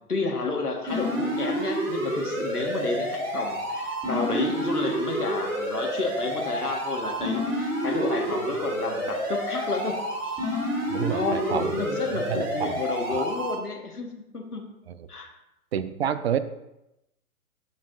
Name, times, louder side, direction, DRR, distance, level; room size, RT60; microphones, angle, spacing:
voice 1, 0.1-10.7 11.1-14.6 15.1-15.3, left 3 dB, 90° left, 2 dB, 1.5 m, -31 dB
sound 1, 0.9-13.5, equal, 10° right, 2.5 m, -29 dB
voice 2, 10.9-11.7 12.1-12.8 13.1-13.3 15.7-16.4, right 9 dB, 45° right, 13 dB, 0.5 m, -29 dB
12.5 x 4.7 x 2.5 m, 0.90 s
figure-of-eight pair, 120°, 44 cm